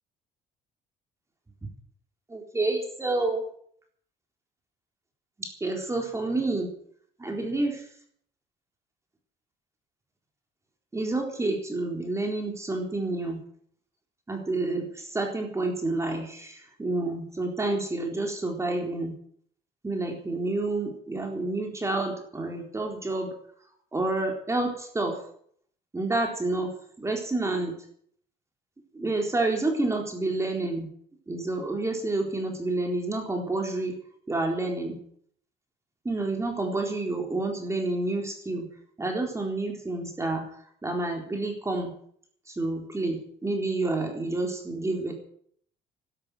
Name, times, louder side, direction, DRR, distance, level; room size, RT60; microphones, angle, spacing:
voice 1, 2.3-3.4 5.4-6.7 7.2-7.8 10.9-13.4 14.3-19.1 19.8-23.3 23.9-25.2 25.9-26.7 27.0-27.7 29.0-30.9 31.3-33.9 34.3-35.0 36.1-38.6 39.0-40.4 40.8-41.9 42.6-45.1, right 2 dB, 15° right, 2 dB, 4.0 m, -29 dB
12.5 x 11.5 x 9.2 m, 0.62 s
cardioid pair, 110°, 17 cm